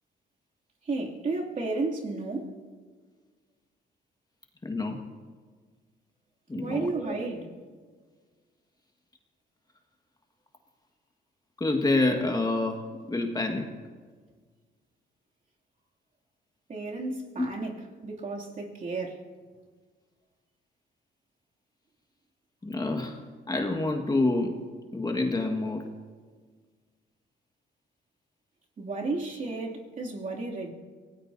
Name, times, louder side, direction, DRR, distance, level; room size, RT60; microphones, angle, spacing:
voice 1, 0.8-2.6 6.6-7.5 16.7-19.3 28.8-30.7, right 3 dB, 40° right, 2.9 m, -33 dB
voice 2, 4.6-5.0 6.5-7.2 11.6-12.8 13.1-13.7 17.4-17.5 22.6-23.2 23.5-24.6 24.9-25.8, left 2 dB, 20° left, 1.8 m, -27 dB
26.5 x 18.5 x 2.8 m
cardioid pair, 90°, 20 cm